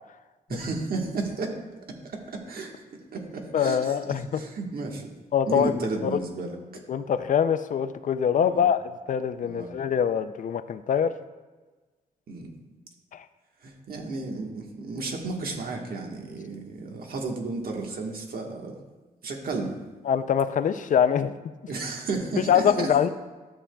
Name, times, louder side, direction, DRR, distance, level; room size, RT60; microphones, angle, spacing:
voice 1, 0.5-1.6 1.9-2.7 3.1-5.1 5.5-6.8 8.4-8.7 9.4-9.8 12.3-12.5 13.6-18.7 19.2-19.7 21.7-22.9, right 3 dB, 75° right, 1 dB, 1.4 m, -33 dB
voice 2, 3.5-4.4 5.3-5.7 6.0-6.1 6.9-11.1 13.1-13.2 20.1-21.3 22.5-23.1, left 8 dB, 55° left, 12 dB, 0.4 m, -24 dB
12.5 x 8.4 x 2.3 m, 1.3 s
wide cardioid pair, 140°, 16 cm